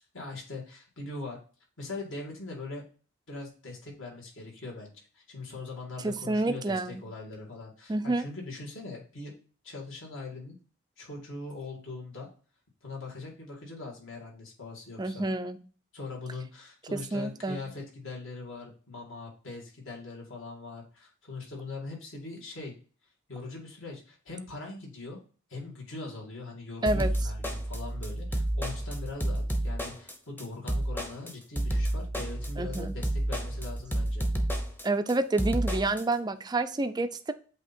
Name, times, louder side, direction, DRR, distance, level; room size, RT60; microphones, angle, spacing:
voice 1, 0.0-1.4 1.8-2.8 3.3-9.3 9.6-10.6 11.0-12.3 12.8-15.2 15.9-22.7 23.3-25.2 25.5-34.3, left 3 dB, 65° left, 2.3 m, -41 dB
voice 2, 6.0-7.0 7.9-8.3 15.0-15.6 16.9-17.6 26.8-27.1 32.6-32.9 34.8-37.3, right 2 dB, 20° right, 0.4 m, -29 dB
sound 1, 26.9-36.0, right 1 dB, 10° left, 0.8 m, -30 dB
8.0 x 2.9 x 4.3 m
head